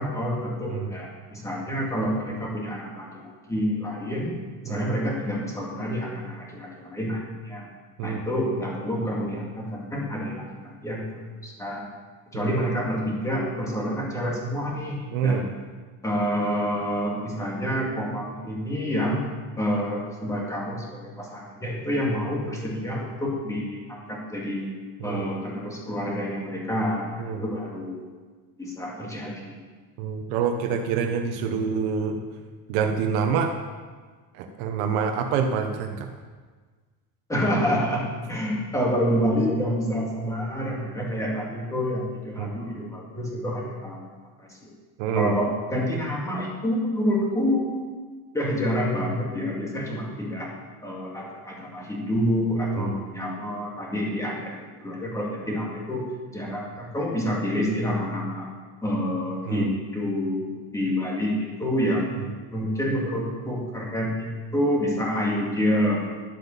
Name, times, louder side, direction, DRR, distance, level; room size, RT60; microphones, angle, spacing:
voice 1, 0.0-7.6 8.0-11.8 12.3-15.5 16.0-19.2 19.6-24.7 25.0-28.0 28.6-29.6 37.3-44.1 44.4-44.7 45.1-47.9 48.3-50.5 50.8-56.0 56.3-58.5 58.8-60.5 60.7-62.1 62.5-66.0, equal, 5° left, -3 dB, 2.2 m, -28 dB
voice 2, 15.1-15.5 25.0-25.3 27.2-27.4 30.0-32.2 32.7-33.5 34.3-36.1 42.4-42.5 45.0-45.4 52.8-53.0 59.5-59.7, right 6 dB, 80° right, 4 dB, 1.2 m, -26 dB
11.5 x 8.0 x 7.2 m, 1.5 s
cardioid pair, 180°, 42 cm